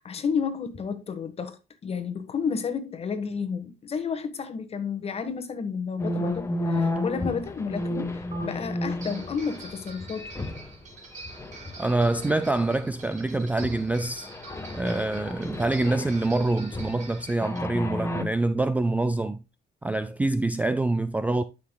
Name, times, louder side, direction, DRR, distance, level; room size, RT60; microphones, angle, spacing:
voice 1, 0.0-10.3, left 6 dB, 35° left, 1.3 m, -31 dB
sound 1, 6.0-10.8 11.2-12.7 13.1-13.2 13.6-17.1 17.4-18.2, left 1 dB, 15° left, 1.1 m, -32 dB
sound 2, 8.3-8.4 9.0-17.6, right 3 dB, 45° right, 2.4 m, -46 dB
voice 2, 11.8-14.3 14.7-19.4 19.8-21.4, right 2 dB, 10° right, 0.4 m, -25 dB
11.5 x 5.8 x 2.2 m
cardioid pair, 110°, 17 cm